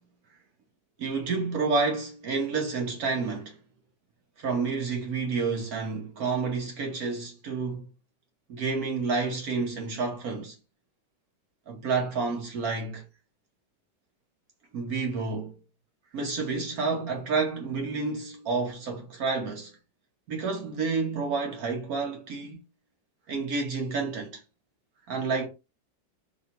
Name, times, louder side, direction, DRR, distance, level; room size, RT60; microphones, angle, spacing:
voice 1, 1.0-3.5 4.4-7.9 8.5-10.5 11.7-13.0 14.7-15.5 16.1-19.7 20.3-22.6 23.3-24.4 25.1-25.5, right 4 dB, 65° right, 1.0 m, -29 dB
3.0 x 2.9 x 4.1 m
omnidirectional pair, 2.1 m